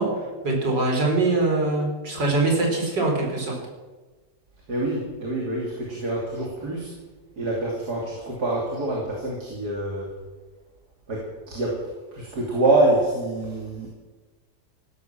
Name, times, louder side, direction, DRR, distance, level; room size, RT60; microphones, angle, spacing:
voice 1, 0.0-3.6, right 2 dB, 85° right, 0 dB, 4.9 m, -23 dB
voice 2, 4.7-6.9 7.4-10.1 11.1-11.8 12.1-13.9, right 2 dB, 65° right, -2 dB, 3.6 m, -25 dB
15.5 x 12.5 x 7.4 m, 1.3 s
omnidirectional pair, 1.8 m